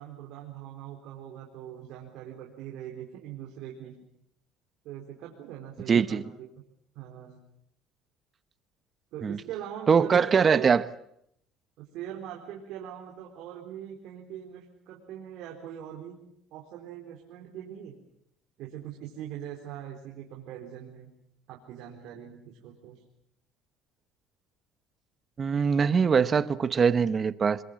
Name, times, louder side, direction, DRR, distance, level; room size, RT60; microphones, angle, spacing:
voice 1, 0.0-3.9 4.8-6.2 7.0-7.4 9.1-10.2 10.5-10.7 11.8-16.2 16.5-18.0 18.6-21.1 21.5-23.0, right 10 dB, 70° right, 0 dB, 4.2 m, -41 dB
voice 2, 5.9-6.2 9.2-9.4 9.9-10.8 25.4-27.6, right 6 dB, 30° right, 14 dB, 1.0 m, -22 dB
26.5 x 22.0 x 7.6 m, 0.75 s
cardioid pair, 130°, 0 cm